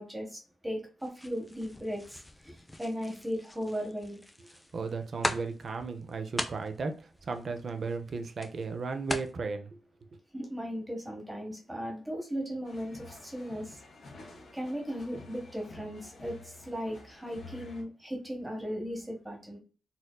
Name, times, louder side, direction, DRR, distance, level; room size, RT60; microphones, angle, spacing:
voice 1, 0.0-4.2 10.3-13.8 14.5-19.6, equal, 10° right, 0.9 m, -37 dB
sound 1, 1.0-9.3, left 1 dB, 10° left, 0.4 m, -40 dB
voice 2, 4.7-9.7, right 4 dB, 45° right, 0.5 m, -35 dB
sound 2, 12.6-17.8, left 3 dB, 65° left, 1.4 m, -50 dB
4.2 x 2.6 x 2.2 m
wide cardioid pair, 170°, 0 cm